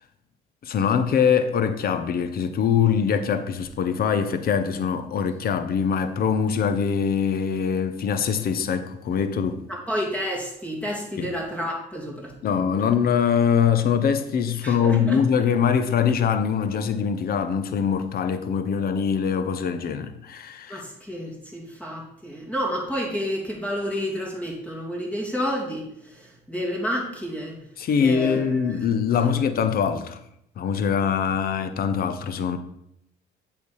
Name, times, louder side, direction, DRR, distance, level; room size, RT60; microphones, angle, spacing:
voice 1, 0.6-9.6 11.2-11.3 12.4-20.8 27.8-30.2 30.6-32.6, left 7 dB, 50° left, 0.8 m, -23 dB
voice 2, 9.7-12.6 14.6-15.2 20.7-27.6 28.0-28.8, equal, 5° left, 2.7 m, -30 dB
8.2 x 3.5 x 6.3 m
cardioid pair, 90°, 19 cm